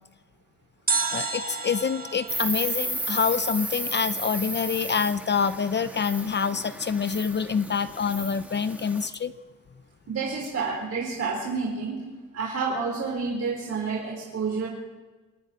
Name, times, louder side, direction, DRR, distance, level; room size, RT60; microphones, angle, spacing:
sound 1, 0.9-4.0 4.2-4.3, right 4 dB, 30° right, 1.8 m, -32 dB
voice 1, 1.1-9.3, left 6 dB, 35° left, 12 dB, 0.9 m, -26 dB
Insect, 2.3-9.1, right 1 dB, 5° right, 2.5 m, -34 dB
voice 2, 10.1-12.0 12.3-14.7, right 4 dB, 55° right, -2 dB, 4.7 m, -29 dB
26.0 x 10.5 x 9.9 m, 1.2 s
cardioid pair, 90°, 30 cm